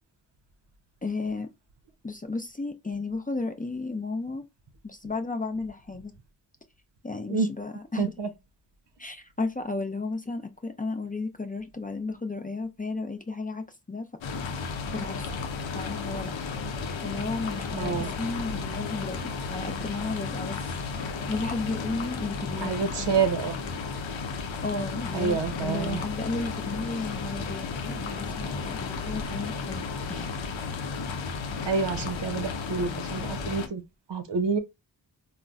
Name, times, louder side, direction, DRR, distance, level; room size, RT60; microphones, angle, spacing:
voice 1, 1.0-1.5 2.0-4.4 4.8-6.1 7.0-8.1 9.0-14.1 14.9-15.3 15.7-16.3 17.0-19.2 19.5-20.6 21.3-23.1 24.6-30.3, left 3 dB, 20° left, 0.5 m, -33 dB
voice 2, 8.0-8.3 17.7-18.1 22.6-23.6 25.1-26.0 31.7-33.8 34.1-34.6, right 5 dB, 65° right, 0.6 m, -28 dB
sound 1, 14.2-33.7, left 4 dB, 85° left, 0.6 m, -33 dB
3.8 x 2.1 x 2.3 m
cardioid pair, 45°, 45 cm